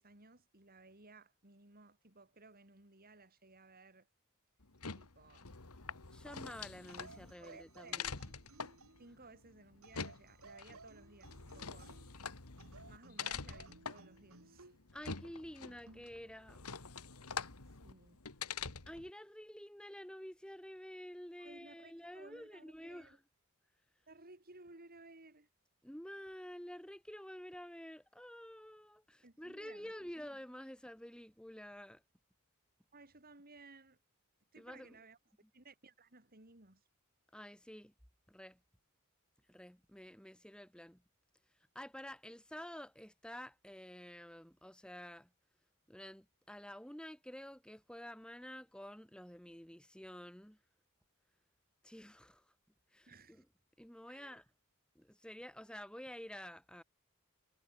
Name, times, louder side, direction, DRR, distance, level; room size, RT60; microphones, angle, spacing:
voice 1, 0.0-4.1 5.0-5.5 7.4-8.1 9.0-12.0 12.9-14.7 17.8-18.2 21.4-23.2 24.1-25.5 29.2-30.1 32.9-34.0 34.5-35.2 35.5-36.8 53.1-53.4 54.1-54.4, right 3 dB, 45° right, 4.4 m, -59 dB
sound 1, 4.6-19.1, left 6 dB, 85° left, 2.2 m, -46 dB
voice 2, 6.1-8.2 14.9-16.6 18.9-23.2 25.8-32.0 34.6-35.0 37.3-37.9 38.3-38.6 39.5-41.0 41.7-45.3 45.9-50.6 51.8-52.4 52.9-53.4 53.8-54.4 54.9-56.8, equal, 5° left, 2.6 m, -50 dB
sound 2, 6.9-9.1 9.8-12.2 12.6-14.8 15.9-16.1, right 3 dB, 70° right, 2.8 m, -59 dB
head